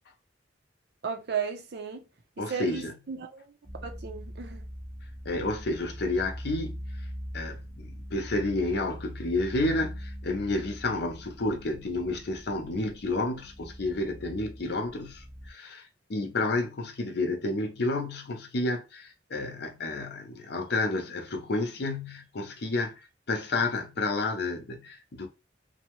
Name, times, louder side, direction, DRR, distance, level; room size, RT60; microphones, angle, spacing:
voice 1, 1.0-2.0 2.4-3.5 3.8-4.7, right 6 dB, 60° right, 0.6 m, -35 dB
voice 2, 2.4-2.9 5.2-6.8 7.3-23.0 23.3-25.3, left 2 dB, 60° left, 0.6 m, -30 dB
sound 1, 3.6-15.5, equal, 5° right, 0.5 m, -42 dB
2.7 x 2.1 x 3.0 m
head